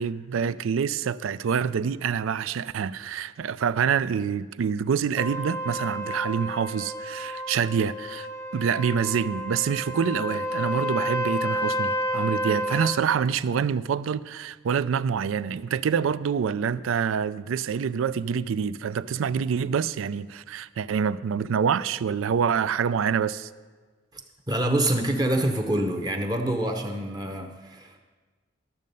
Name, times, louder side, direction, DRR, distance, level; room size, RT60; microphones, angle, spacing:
voice 1, 0.0-8.3 8.5-23.5, right 7 dB, 85° right, 0.4 m, -26 dB
Trumpet, 5.2-13.0, equal, 15° left, 0.6 m, -30 dB
voice 2, 24.5-28.0, right 1 dB, 20° right, 0.7 m, -26 dB
12.0 x 7.5 x 5.3 m
head